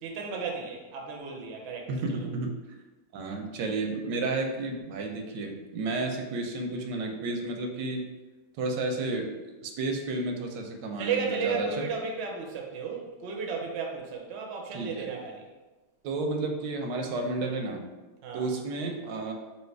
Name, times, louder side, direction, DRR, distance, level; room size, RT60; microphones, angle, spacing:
voice 1, 0.0-1.9 11.0-15.5 18.2-18.5, right 5 dB, 60° right, 1 dB, 0.7 m, -34 dB
voice 2, 1.9-2.5 3.1-8.1 8.6-9.3 9.6-11.9 14.7-15.1 16.0-17.9 18.3-19.3, right 3 dB, 85° right, 3 dB, 1.3 m, -32 dB
3.2 x 2.9 x 4.4 m, 1.2 s
omnidirectional pair, 1.9 m